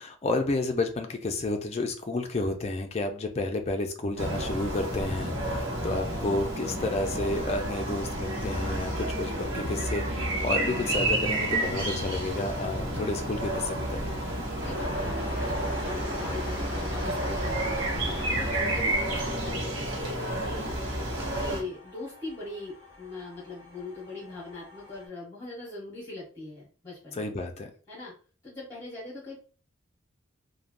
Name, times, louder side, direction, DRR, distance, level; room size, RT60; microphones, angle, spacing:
voice 1, 0.0-5.4 5.8-14.1 27.1-27.7, left 2 dB, 30° left, 5 dB, 0.4 m, -31 dB
sound 1, 4.2-21.6, right 1 dB, 75° right, 0.9 m, -30 dB
voice 2, 12.7-13.3 14.6-27.2 27.9-28.1 28.4-29.3, left 2 dB, 15° left, -7 dB, 1.1 m, -41 dB
sound 2, 14.3-25.1, left 1 dB, 30° right, 1.3 m, -41 dB
3.2 x 2.1 x 2.5 m, 0.38 s
head